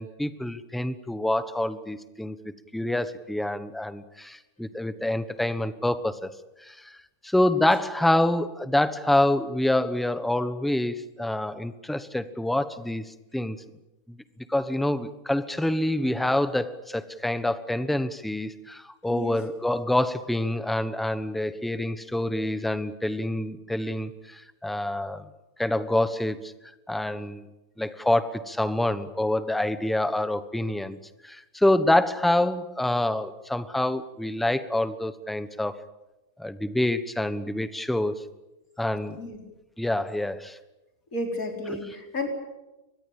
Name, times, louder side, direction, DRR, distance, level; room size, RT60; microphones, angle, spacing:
voice 1, 0.0-2.4 2.7-6.3 6.6-7.0 7.2-13.6 14.1-14.2 14.5-25.3 25.6-26.5 26.9-27.4 27.8-31.0 31.2-35.8 36.4-38.2 38.8-39.2 39.8-40.6 41.7-41.8, left 1 dB, ahead, 12 dB, 1.0 m, -26 dB
voice 2, 41.1-42.3, left 2 dB, 75° left, 3 dB, 4.8 m, -32 dB
24.0 x 20.5 x 8.8 m, 1.0 s
omnidirectional pair, 1.5 m